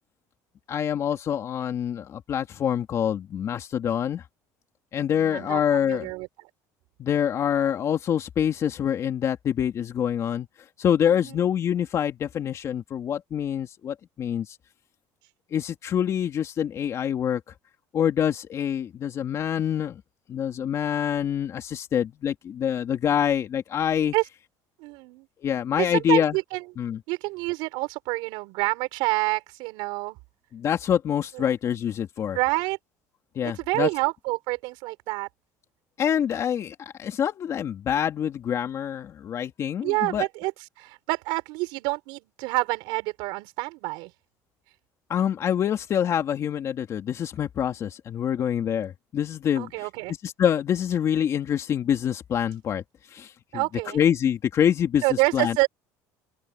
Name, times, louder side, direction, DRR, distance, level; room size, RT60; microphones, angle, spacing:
voice 1, 0.7-4.2 4.9-6.1 7.0-10.5 10.8-14.6 15.5-17.4 17.9-20.0 20.3-24.1 25.4-26.4 26.8-27.0 30.5-32.4 33.3-33.9 36.0-40.3 45.1-49.9 50.2-52.8 53.1-53.6 53.9-55.0 55.3-55.6, left 9 dB, 40° left, 2.7 m, -26 dB
voice 2, 5.1-6.3 11.1-11.4 24.1-24.2 24.8-25.3 25.8-26.6 27.1-30.2 31.3-31.4 32.3-32.8 33.4-35.3 39.8-40.5 40.8-44.1 49.6-50.1 53.5-54.0 55.0-55.7, right 24 dB, 80° right, 7.1 m, -27 dB
open air
cardioid pair, 135°, 8 cm